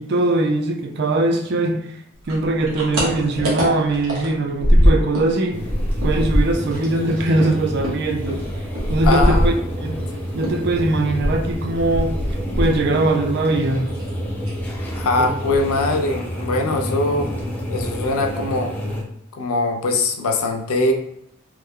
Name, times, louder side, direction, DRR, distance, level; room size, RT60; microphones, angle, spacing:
voice 1, 0.0-1.9 2.3-5.7 6.0-8.4 8.9-9.5 9.8-10.0 10.3-12.2 12.6-13.9, right 2 dB, 50° right, 0.4 m, -21 dB
sound 1, 2.2-5.3 5.6-10.1 10.4-13.2 13.4-14.1 14.4-14.7 15.0-15.1 15.4-15.9, equal, 90° right, 1.2 m, -21 dB
sound 2, 5.5-19.0, equal, 10° left, 0.5 m, -29 dB
voice 2, 9.0-9.5 15.0-17.3 17.7-18.7 19.4-20.9, left 2 dB, 90° left, 0.5 m, -21 dB
3.1 x 2.1 x 3.5 m
head